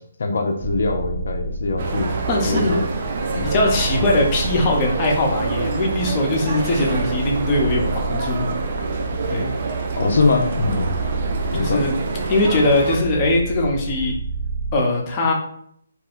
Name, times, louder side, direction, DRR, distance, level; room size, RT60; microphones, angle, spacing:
voice 1, 0.2-2.1 2.4-2.8 3.3-3.5 3.9-4.1 10.0-11.0 11.5-11.8, left 3 dB, 65° left, 4 dB, 0.4 m, -22 dB
sound 1, 0.6-14.7, right 3 dB, 35° right, 1.2 m, -29 dB
sound 2, 1.8-13.0, right 3 dB, 50° right, 0.4 m, -27 dB
voice 2, 2.3-2.8 3.4-8.5 9.3-9.5 11.5-12.0 12.3-14.1 14.7-15.3, left 2 dB, 30° left, -1 dB, 0.7 m, -21 dB
2.4 x 2.2 x 3.5 m, 0.68 s
figure-of-eight pair, 145°, 0 cm